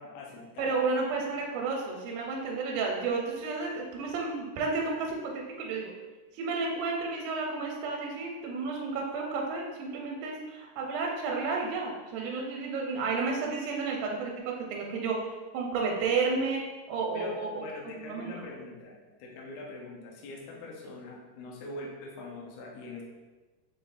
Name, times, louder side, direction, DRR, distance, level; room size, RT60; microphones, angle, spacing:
voice 1, 0.0-0.7 17.1-23.0, left 2 dB, 80° left, -2 dB, 1.5 m, -43 dB
voice 2, 0.6-5.9 6.3-15.2 15.5-16.6 16.9-17.6 18.1-18.4, right 4 dB, 85° right, 0 dB, 2.2 m, -31 dB
5.7 x 3.5 x 2.4 m, 1.2 s
omnidirectional pair, 3.7 m